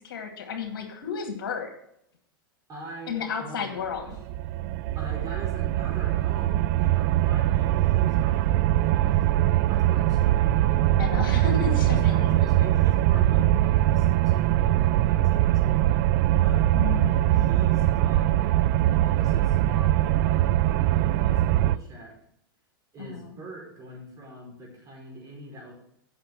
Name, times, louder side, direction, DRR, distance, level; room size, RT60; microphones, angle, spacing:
voice 1, 0.0-1.7 3.1-4.2 11.0-12.4 16.7-17.5 23.0-23.4, left 6 dB, 70° left, 4 dB, 2.3 m, -33 dB
voice 2, 2.7-4.1 4.9-9.3 9.6-10.9 11.8-16.8 17.4-22.1 22.9-25.7, right 1 dB, 30° right, -1 dB, 5.0 m, -43 dB
sound 1, 4.0-21.8, right 14 dB, 55° right, 0.4 m, -22 dB
8.7 x 6.6 x 7.6 m, 0.73 s
hypercardioid pair, 110°, 12 cm